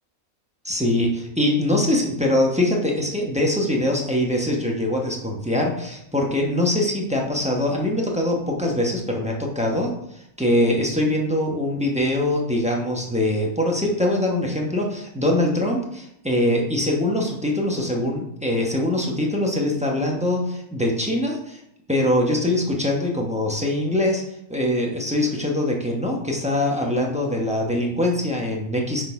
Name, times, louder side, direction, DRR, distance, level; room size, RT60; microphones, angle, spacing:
voice 1, 0.6-21.6 21.9-24.2 24.5-29.0, left 1 dB, 5° right, -1 dB, 0.7 m, -23 dB
6.2 x 4.1 x 4.7 m, 0.76 s
omnidirectional pair, 1.5 m